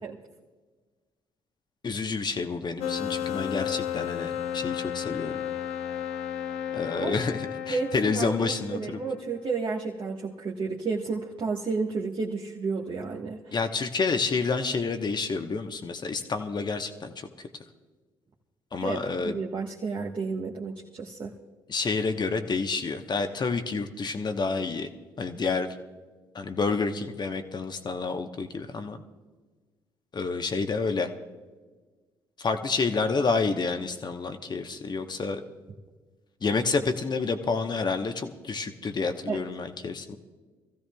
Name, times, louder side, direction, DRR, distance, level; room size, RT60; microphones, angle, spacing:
voice 1, 1.8-5.4 6.7-9.0 13.5-17.3 18.7-19.4 21.7-24.9 25.2-25.7 26.3-29.0 30.1-31.1 32.4-35.4 36.4-40.2, left 4 dB, 35° left, 7 dB, 1.1 m, -29 dB
sound 1, 2.8-9.2, left 9 dB, 65° left, 0.8 m, -33 dB
voice 2, 7.7-8.3 8.7-13.4 18.8-19.0 19.2-21.3 39.3-39.4, right 4 dB, 45° right, -2 dB, 1.3 m, -31 dB
24.0 x 15.5 x 2.3 m, 1.4 s
hypercardioid pair, 45°, 12 cm